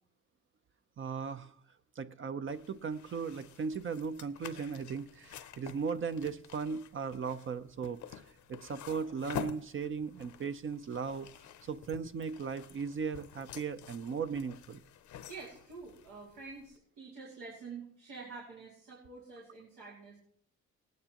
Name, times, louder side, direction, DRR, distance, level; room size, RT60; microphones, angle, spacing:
voice 1, 1.0-1.5 2.0-8.2 8.5-11.3 11.6-14.8, right 5 dB, 40° right, 10 dB, 0.6 m, -37 dB
sound 1, 2.5-16.8, left 9 dB, 70° left, 0.7 m, -49 dB
voice 2, 15.2-20.2, right 4 dB, 90° right, -7 dB, 2.7 m, -48 dB
18.5 x 9.3 x 2.9 m, 0.64 s
cardioid pair, 90°, 30 cm